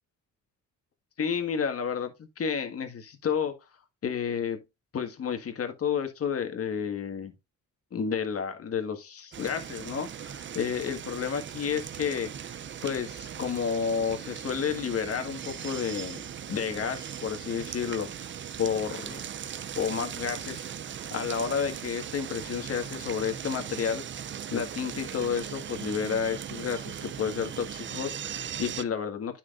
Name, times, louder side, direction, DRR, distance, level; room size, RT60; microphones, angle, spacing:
voice 1, 1.2-3.5 4.0-4.6 4.9-7.3 7.9-18.3 18.6-19.2 19.8-20.7 21.1-24.0 24.5-29.4, left 7 dB, 50° left, 1.7 m, -31 dB
sound 1, 9.3-28.8, right 9 dB, 40° right, 0.5 m, -39 dB
9.8 x 6.0 x 2.5 m
cardioid pair, 90°, 30 cm